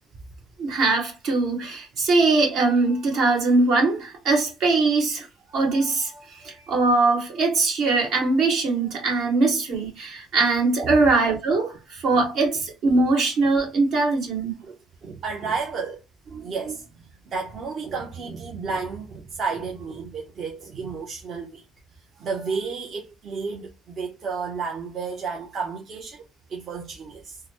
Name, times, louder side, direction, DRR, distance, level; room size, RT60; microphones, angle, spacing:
voice 1, 0.6-5.3 5.5-14.5, right 3 dB, 65° right, 1.8 m, -21 dB
voice 2, 15.0-16.9 17.3-21.6 22.2-26.2 26.5-27.4, right 5 dB, 45° right, 0.8 m, -32 dB
3.8 x 2.1 x 3.0 m
cardioid pair, 115°, 0 cm